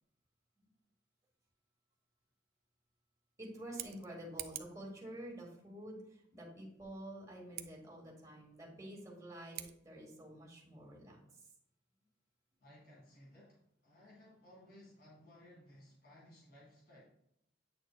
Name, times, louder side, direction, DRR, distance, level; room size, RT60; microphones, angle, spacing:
voice 1, 3.4-11.2, right 1 dB, 15° right, -2 dB, 2.0 m, -49 dB
Scissors, 3.6-4.8 7.5-7.7 9.5-9.7, right 12 dB, 50° right, 0.5 m, -46 dB
voice 2, 12.6-17.1, left 1 dB, 55° left, -4 dB, 2.2 m, -59 dB
9.0 x 6.3 x 2.3 m, 0.78 s
head